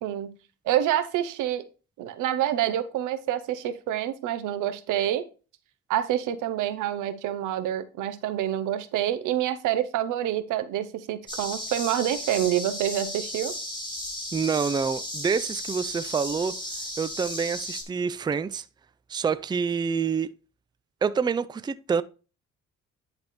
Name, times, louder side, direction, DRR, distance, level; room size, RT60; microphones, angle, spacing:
voice 1, 0.0-0.3 0.7-1.6 2.0-5.2 5.9-13.5, right 11 dB, 90° right, 0.8 m, -27 dB
sound 1, 11.3-17.8, left 1 dB, 15° left, 2.7 m, -35 dB
voice 2, 14.3-16.5 17.0-18.6 19.1-20.3 21.0-22.0, right 6 dB, 15° right, 0.4 m, -27 dB
10.5 x 3.5 x 4.2 m
cardioid pair, 90°, 30 cm